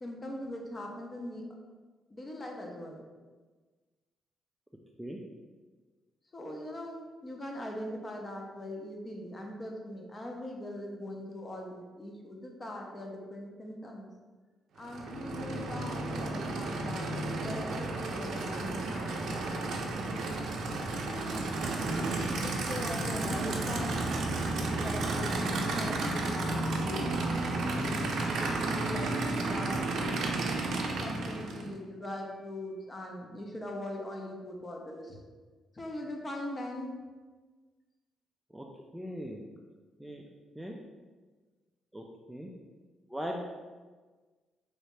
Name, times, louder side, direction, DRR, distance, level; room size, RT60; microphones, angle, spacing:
voice 1, 0.0-1.5 2.1-3.0 6.3-14.1 14.8-19.8 20.9-21.5 22.4-24.0 24.6-30.2 31.0-35.2 35.7-36.9, left 1 dB, 30° left, 1 dB, 0.7 m, -41 dB
Aircraft / Idling, 14.8-31.7, right 2 dB, 70° right, 0.5 m, -32 dB
voice 2, 38.9-39.4 40.0-40.2 40.6-40.7 41.9-42.5 43.1-43.4, equal, 5° right, 0 dB, 0.3 m, -39 dB
3.2 x 2.7 x 3.2 m, 1.3 s
cardioid pair, 90°, 0 cm